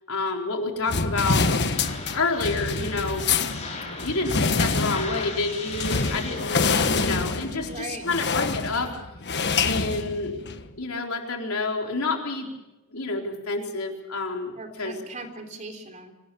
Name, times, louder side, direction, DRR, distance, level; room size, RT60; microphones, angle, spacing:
voice 1, 0.1-1.5 2.1-3.2 4.0-8.9 9.6-10.4 10.8-12.5 12.9-14.5 14.8-15.0, left 3 dB, 75° left, 1 dB, 4.4 m, -28 dB
sound 1, 0.9-10.7, left 4 dB, 50° left, 1.4 m, -26 dB
sound 2, 1.3-7.1, left 4 dB, 30° left, 6.5 m, -38 dB
voice 2, 7.7-8.0 14.6-16.1, right 2 dB, 35° right, 5 dB, 3.6 m, -38 dB
25.5 x 19.5 x 7.1 m, 1.0 s
head